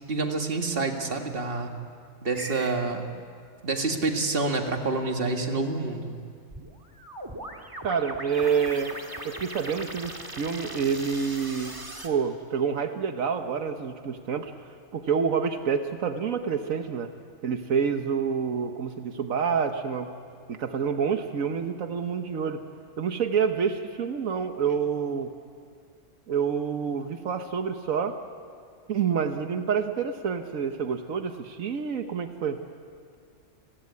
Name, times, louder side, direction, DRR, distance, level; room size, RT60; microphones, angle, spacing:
voice 1, 0.1-1.7 2.2-3.0 3.6-6.1, right 3 dB, 45° right, 4 dB, 2.2 m, -27 dB
sound 1, 2.3-2.8 6.5-12.1, right 1 dB, 15° right, 1.8 m, -39 dB
voice 2, 7.8-8.9 9.2-11.7 12.0-14.5 14.9-17.1 17.4-20.1 20.5-22.6 23.0-25.3 26.3-28.2 28.9-32.6, right 6 dB, 85° right, 7 dB, 1.5 m, -28 dB
30.0 x 16.0 x 9.7 m, 2.2 s
omnidirectional pair, 1.4 m